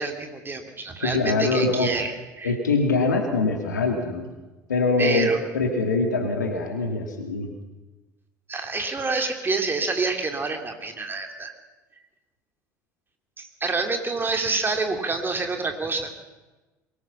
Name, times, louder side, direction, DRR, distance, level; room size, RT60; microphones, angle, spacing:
voice 1, 0.0-2.5 5.0-5.4 8.5-11.5 13.4-16.1, right 3 dB, 20° right, 4 dB, 3.1 m, -27 dB
voice 2, 1.0-1.9 2.4-4.3 4.7-5.3 5.5-7.5, left 3 dB, 80° left, 4 dB, 2.6 m, -23 dB
23.0 x 19.5 x 5.8 m, 1.2 s
figure-of-eight pair, 65°, 9 cm